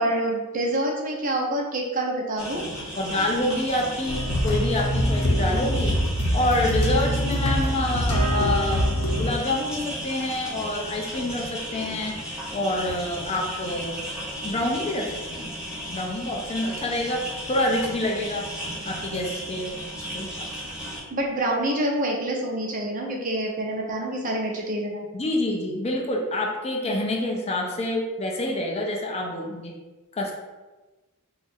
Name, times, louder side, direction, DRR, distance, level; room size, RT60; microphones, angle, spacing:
voice 1, 0.0-2.6 21.1-25.1, right 1 dB, 35° right, 0 dB, 0.6 m, -27 dB
sound 1, 2.4-21.0, equal, 5° right, 0.8 m, -35 dB
voice 2, 3.0-5.9 6.3-12.1 12.5-14.0 14.4-15.5 15.9-17.2 17.5-18.4 18.8-19.8 20.1-20.5 25.1-29.7 30.2-30.4, left 1 dB, 30° left, 0 dB, 0.4 m, -27 dB
sound 2, 4.1-9.3, equal, 85° left, 0.7 m, -24 dB
2.7 x 2.4 x 4.1 m, 1.2 s
head